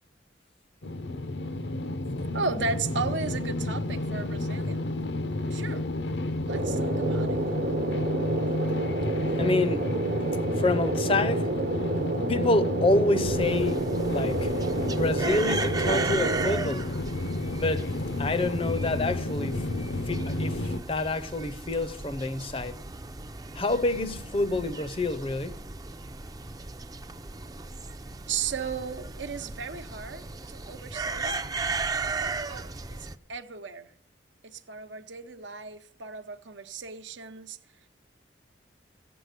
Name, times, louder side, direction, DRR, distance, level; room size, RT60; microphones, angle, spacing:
sound 1, 0.8-20.8, left 1 dB, 65° left, 0.8 m, -31 dB
voice 1, 2.3-4.9 5.5-5.8 6.4-7.4 28.3-31.4 32.2-33.9 34.4-37.6, right 5 dB, 75° right, 0.9 m, -35 dB
sound 2, 6.5-16.5, right 3 dB, 55° right, 1.0 m, -30 dB
voice 2, 9.4-9.9 10.6-11.5 12.3-14.5 14.9-16.9 17.5-17.9 18.2-19.6 20.1-22.8 23.5-25.6, left 2 dB, 30° left, 0.6 m, -27 dB
sound 3, 13.3-33.1, right 3 dB, 20° right, 0.5 m, -36 dB
16.0 x 7.9 x 8.2 m
head